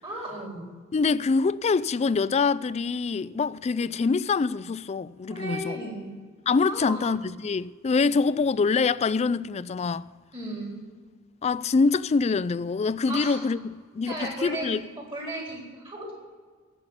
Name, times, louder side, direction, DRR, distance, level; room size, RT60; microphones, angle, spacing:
voice 1, 0.0-0.6 5.3-6.1 6.7-7.0 10.3-10.8 13.1-13.4 14.1-16.2, right 1 dB, 25° right, 3.8 m, -35 dB
voice 2, 0.9-5.8 6.5-10.1 11.4-14.8, left 4 dB, 30° left, 0.3 m, -25 dB
15.5 x 6.3 x 9.8 m
head